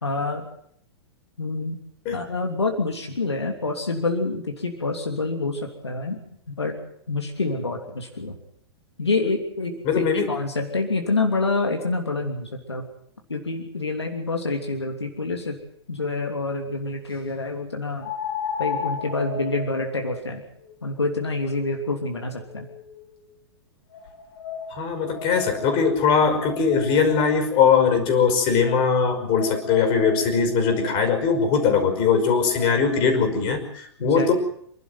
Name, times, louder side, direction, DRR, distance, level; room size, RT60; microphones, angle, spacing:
voice 1, 0.0-0.4 1.4-1.8 2.1-6.2 6.5-6.8 7.1-8.4 9.0-12.8 13.3-15.6 15.9-18.1 18.6-20.4 20.8-22.7 26.8-26.9 34.0-34.3, left 3 dB, 80° left, 2 dB, 3.1 m, -27 dB
voice 2, 9.8-10.3 24.7-34.3, left 6 dB, 40° left, 7 dB, 5.4 m, -21 dB
sound 1, 15.4-15.5 18.0-23.2 23.9-27.6 28.6-33.2, left 5 dB, 60° left, 5.6 m, -35 dB
27.5 x 12.0 x 9.4 m, 0.70 s
figure-of-eight pair, 105°, 14 cm